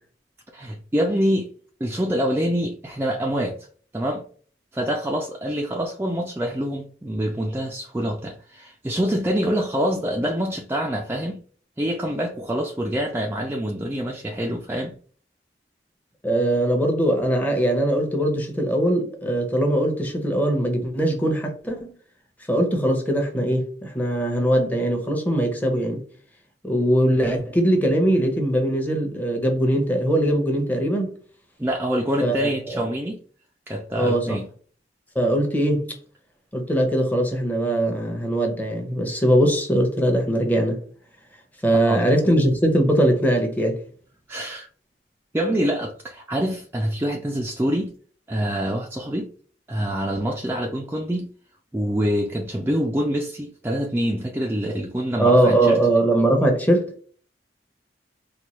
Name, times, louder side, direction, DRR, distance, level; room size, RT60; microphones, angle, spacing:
voice 1, 0.5-1.5 1.8-3.7 3.9-4.3 4.7-11.4 11.8-14.9 31.6-33.2 33.7-34.5 41.7-42.1 44.3-44.7 45.3-47.9 48.3-49.3 49.7-51.3 51.7-55.8, equal, 15° right, 0.3 m, -25 dB
voice 2, 16.2-21.9 22.5-26.0 26.6-31.1 32.2-32.8 34.0-34.4 35.1-35.9 36.5-40.8 41.6-43.8 55.2-56.9, right 1 dB, 10° left, 0.7 m, -21 dB
4.3 x 2.3 x 3.0 m
head